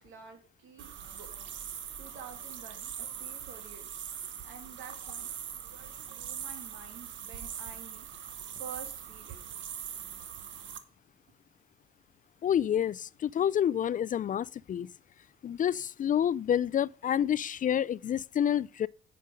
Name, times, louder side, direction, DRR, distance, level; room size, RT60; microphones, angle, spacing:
voice 1, 0.0-1.3 2.0-3.9 4.4-5.3 5.6-8.1 8.6-9.4, right 6 dB, 90° right, 2.4 m, -49 dB
sound 1, 0.8-10.8, right 8 dB, 70° right, 1.1 m, -42 dB
voice 2, 12.4-14.9 15.4-18.9, left 9 dB, 40° left, 0.4 m, -28 dB
9.6 x 5.2 x 5.2 m
cardioid pair, 90°, 20 cm